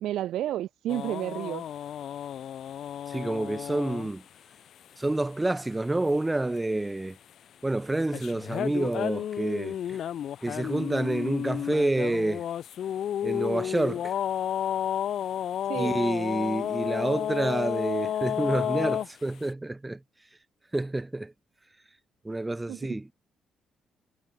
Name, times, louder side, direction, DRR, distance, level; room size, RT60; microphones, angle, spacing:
voice 1, 0.0-1.6 15.7-16.0 22.7-23.0, right 13 dB, 80° right, 0.3 m, -31 dB
sound 1, 0.9-4.1 8.1-19.1, left 10 dB, 65° left, 0.9 m, -31 dB
voice 2, 3.1-4.2 5.0-7.2 7.6-10.0 10.4-12.4 13.2-14.2 15.7-20.0 20.7-21.3 22.2-23.1, right 2 dB, 15° right, 0.4 m, -28 dB
cardioid pair, 90°, 0 cm